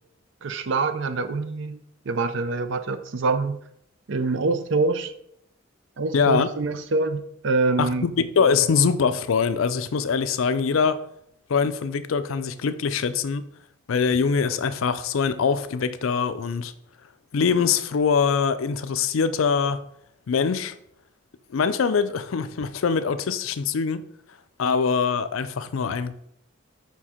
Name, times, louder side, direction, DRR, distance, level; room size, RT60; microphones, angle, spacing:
voice 1, 0.4-1.8 2.1-3.6 4.1-5.1 6.0-8.1, right 3 dB, 60° right, 0.5 m, -25 dB
voice 2, 6.1-6.5 7.8-11.0 11.5-13.5 13.9-16.7 17.3-19.8 20.3-20.7 21.5-24.0 24.6-26.1, left 5 dB, 75° left, 0.4 m, -23 dB
5.6 x 4.6 x 4.3 m
head